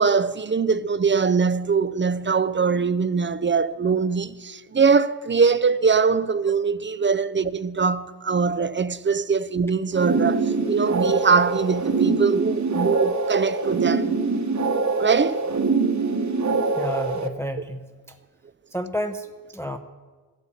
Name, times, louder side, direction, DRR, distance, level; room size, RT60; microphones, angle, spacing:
voice 1, 0.0-14.2 15.0-15.4, right 5 dB, 30° right, 0.5 m, -22 dB
sound 1, 9.9-17.3, right 4 dB, 50° right, 1.2 m, -24 dB
voice 2, 16.8-17.9 18.7-19.3 19.5-19.8, equal, 5° left, 0.7 m, -29 dB
14.0 x 8.4 x 7.3 m
cardioid pair, 65°, 38 cm